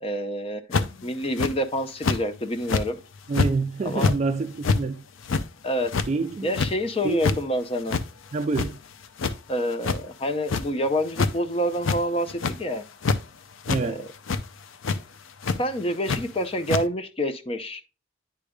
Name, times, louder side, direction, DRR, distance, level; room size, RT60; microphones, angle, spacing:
voice 1, 0.0-3.0 3.8-4.1 5.6-5.9 6.4-8.0 9.5-12.8 13.8-14.1 15.6-17.8, equal, 30° left, 0.6 m, -27 dB
sound 1, 0.7-1.0 1.4-1.5 2.0-2.2 2.6-2.9 3.3-3.5 3.9-4.1 4.6-4.8 5.2-5.4 5.9-6.1 6.5-6.7 7.1-7.4 7.9-8.0 8.4-8.9 9.2-9.3 9.8-10.0 10.5-10.6 11.1-11.3 11.8-12.0 12.3-12.6 13.0-13.2 13.6-13.8 14.3-14.4 14.8-15.0 15.4-15.6 16.1-16.2 16.7-16.8, left 4 dB, 80° left, 0.5 m, -24 dB
voice 2, 3.3-5.0 6.1-6.6 7.0-7.2 8.3-8.8 13.7-14.1, right 3 dB, 35° right, 0.3 m, -27 dB
9.7 x 5.0 x 2.3 m
head